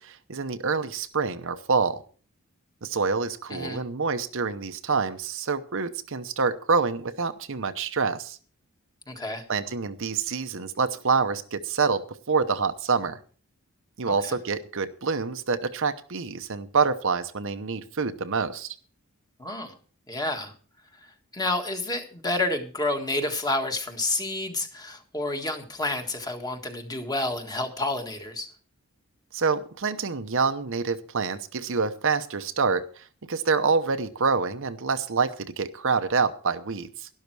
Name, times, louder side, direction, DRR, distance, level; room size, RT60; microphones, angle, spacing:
voice 1, 0.0-2.0 2.8-8.4 9.5-13.2 14.0-18.7 29.3-37.1, right 5 dB, 60° right, 9 dB, 0.9 m, -27 dB
voice 2, 3.5-3.8 9.1-9.4 14.2-14.4 19.4-19.7 20.1-20.5 21.3-28.5, left 2 dB, 15° left, 5 dB, 1.7 m, -29 dB
12.0 x 11.5 x 4.7 m, 0.41 s
head